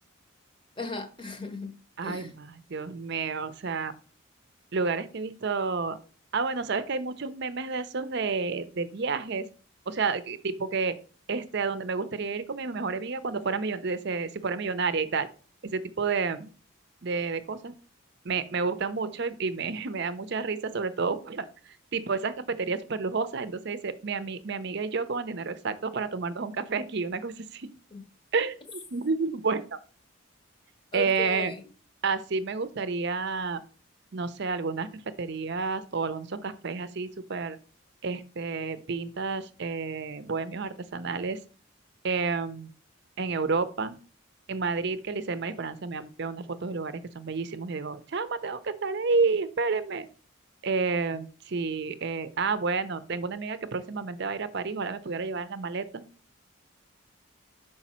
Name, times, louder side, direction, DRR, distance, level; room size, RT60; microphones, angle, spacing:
voice 1, 0.8-2.3 27.9-28.0 30.9-31.6, left 3 dB, 25° left, 0.8 m, -36 dB
voice 2, 2.0-3.9 4.7-6.0 6.3-9.5 9.9-11.0 11.3-15.3 15.6-16.5 17.0-17.7 18.2-21.5 21.9-27.7 28.3-28.6 28.9-29.8 30.9-31.5 32.0-33.6 34.1-37.6 38.0-41.4 42.0-42.7 43.2-44.0 44.5-50.1 50.6-56.0, right 4 dB, 55° right, 0.6 m, -30 dB
6.1 x 4.7 x 4.2 m
head